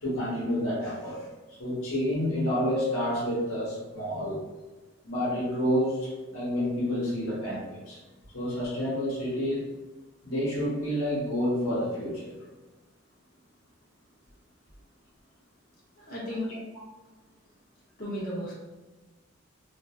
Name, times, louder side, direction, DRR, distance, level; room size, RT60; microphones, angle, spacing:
voice 1, 0.0-1.3 1.6-4.4 5.0-8.0 8.3-9.7 10.2-12.4, equal, 90° left, -5 dB, 1.0 m, -29 dB
voice 2, 16.0-16.5 18.0-18.5, left 1 dB, 45° left, -7 dB, 0.8 m, -34 dB
2.9 x 2.5 x 2.3 m, 1.2 s
head